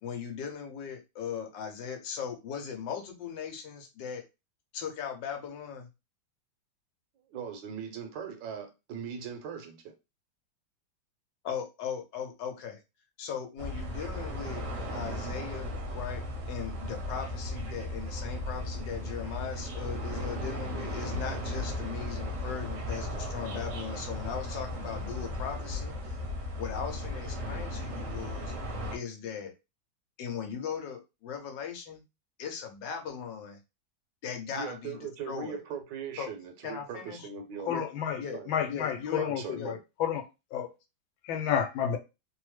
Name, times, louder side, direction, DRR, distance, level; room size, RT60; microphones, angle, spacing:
voice 1, 0.0-4.3 4.7-5.9 11.4-12.8 13.2-14.6 14.9-26.2 26.6-28.5 28.9-29.5 30.2-32.0 32.4-33.6 34.2-35.6 36.2-36.3 36.6-37.3 37.7-37.9 38.2-38.4 38.7-39.3 39.5-39.8, left 7 dB, 70° left, 1.3 m, -38 dB
voice 2, 7.3-9.9 34.5-37.9 38.3-38.5 39.2-39.8, right 7 dB, 70° right, 1.3 m, -40 dB
sound 1, 13.6-29.0, left 1 dB, 55° right, 1.0 m, -36 dB
voice 3, 37.7-38.2 38.5-39.4 39.7-40.2 40.5-40.7 41.3-42.0, left 8 dB, 90° left, 1.4 m, -30 dB
3.4 x 2.0 x 3.1 m
omnidirectional pair, 2.1 m